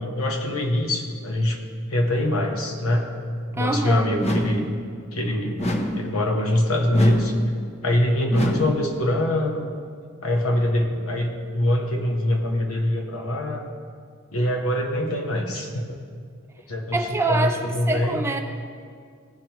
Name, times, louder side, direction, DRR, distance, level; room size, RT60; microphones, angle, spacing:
voice 1, 0.0-1.6 1.9-3.1 3.5-4.7 5.1-5.6 5.9-7.3 7.8-9.7 10.2-13.7 14.3-16.0 16.7-17.0 17.3-18.2, left 1 dB, 70° left, 2 dB, 1.1 m, -23 dB
voice 2, 3.5-4.2 16.9-17.6 17.9-18.4, right 2 dB, 10° right, 4 dB, 0.4 m, -25 dB
sound 1, 4.2-4.7 5.6-6.1 6.9-7.4 8.3-8.8, equal, 30° left, 0.7 m, -26 dB
15.5 x 5.3 x 3.0 m, 2.1 s
head